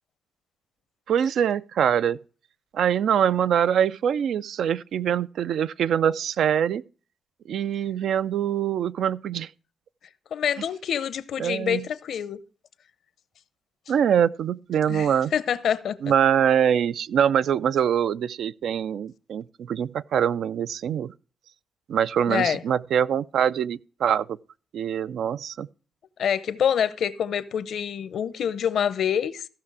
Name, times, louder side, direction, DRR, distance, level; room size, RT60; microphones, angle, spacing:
voice 1, 1.1-2.2 2.7-6.8 7.5-9.5 11.4-11.9 13.9-15.3 16.0-21.1 21.9-24.4 24.7-25.7, right 8 dB, 80° right, 0.4 m, -24 dB
voice 2, 10.3-12.4 14.9-16.1 22.3-22.6 26.2-29.5, left 8 dB, 75° left, 0.7 m, -26 dB
15.0 x 5.9 x 4.8 m
cardioid pair, 120°, 0 cm